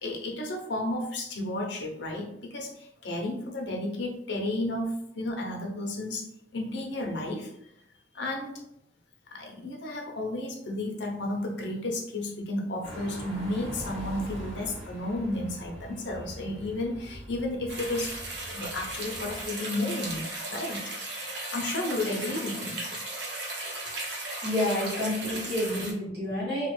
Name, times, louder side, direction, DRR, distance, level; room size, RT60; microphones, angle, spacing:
voice 1, 0.0-6.3 6.5-7.5 8.1-8.5 9.3-18.1 18.5-20.2 20.5-20.8 21.5-22.8, left 1 dB, 75° left, 0 dB, 0.7 m, -32 dB
sound 1, 12.8-19.5, equal, 35° right, 1.4 m, -42 dB
sound 2, 17.7-25.9, right 2 dB, 75° right, 0.9 m, -36 dB
voice 2, 24.4-26.7, left 1 dB, 55° right, -7 dB, 1.4 m, -29 dB
2.9 x 2.4 x 3.1 m, 0.77 s
head